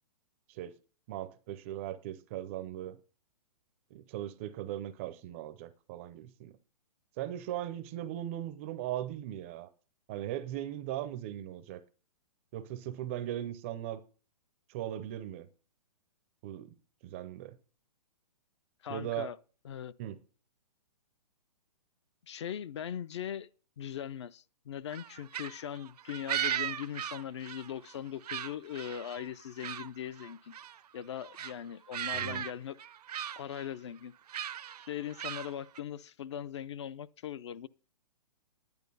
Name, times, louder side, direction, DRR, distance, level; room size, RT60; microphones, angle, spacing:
voice 1, 1.1-3.0 3.9-6.6 7.2-9.7 10.1-11.8 12.5-14.0 14.7-15.5 16.4-16.7 17.0-17.6 18.9-19.3 20.0-20.2 32.1-32.4, right 12 dB, 20° right, 0.4 m, -38 dB
voice 2, 18.8-19.4 19.6-19.9 22.3-23.5 23.8-30.5 30.9-32.8 33.4-34.1 34.9-37.7, left 9 dB, 45° left, 0.4 m, -40 dB
sound 1, 24.9-28.0 28.2-29.9 30.2-30.8 31.2-31.5 31.9-32.5 32.8-33.7 34.3-35.8, right 10 dB, 75° right, 0.5 m, -38 dB
10.5 x 8.8 x 5.3 m
hypercardioid pair, 160°, 20 cm